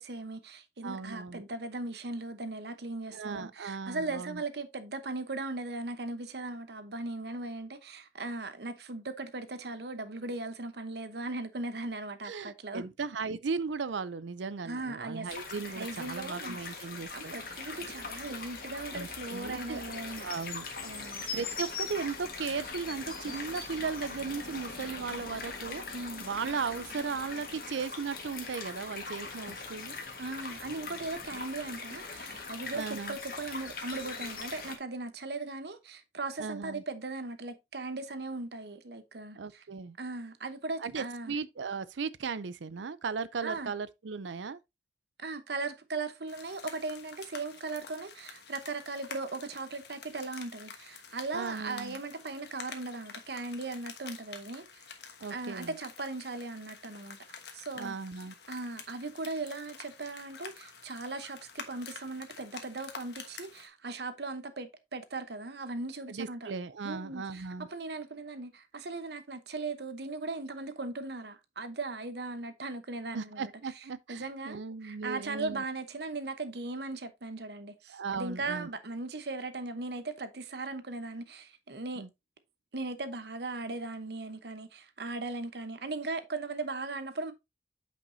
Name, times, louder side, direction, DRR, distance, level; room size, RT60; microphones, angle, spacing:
voice 1, 0.0-12.9 14.6-15.3 15.6-16.6 17.1-20.3 20.8-21.4 25.9-26.3 30.2-39.6 40.0-41.3 43.4-43.7 45.2-54.8 55.3-57.2 57.5-58.0 58.5-66.5 66.8-73.5 74.1-82.0 82.7-87.3, right 3 dB, 65° right, 0.9 m, -38 dB
voice 2, 0.8-1.5 3.1-4.4 12.2-17.3 18.9-19.8 20.2-20.7 21.3-25.8 26.2-30.0 32.7-33.2 36.4-36.8 39.4-40.0 40.8-44.6 51.3-52.0 55.2-55.7 57.8-58.3 66.1-67.7 73.1-75.6 77.9-78.7 82.0-82.1, right 5 dB, 85° right, 0.5 m, -37 dB
sound 1, 15.3-34.8, left 4 dB, 50° left, 1.5 m, -41 dB
sound 2, 46.3-63.7, left 6 dB, 70° left, 1.2 m, -49 dB
8.7 x 5.2 x 2.7 m
head